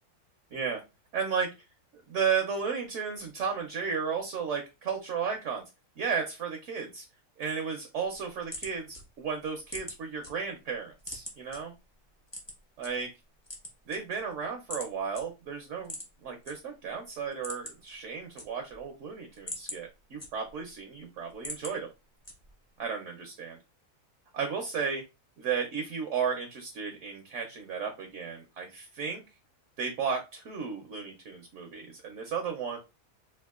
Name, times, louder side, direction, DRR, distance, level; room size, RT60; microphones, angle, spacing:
voice 1, 0.5-0.8 1.1-1.5 2.1-5.6 6.0-7.1 7.4-11.7 12.8-13.1 13.9-15.9 16.2-21.9 22.8-23.6 24.3-25.0 25.4-29.2 29.8-32.8, right 6 dB, 60° right, 3 dB, 0.9 m, -34 dB
sound 1, 8.2-10.3 10.7-11.6 12.3-12.9 13.4-14.3 14.7-14.9 15.1-15.2 15.8-16.5 16.9-17.0 17.3-17.9 18.2-18.9 19.2-20.7 21.1-21.7 22.2-22.7, equal, 25° left, 0.6 m, -41 dB
4.3 x 2.4 x 2.4 m, 0.25 s
omnidirectional pair, 1.7 m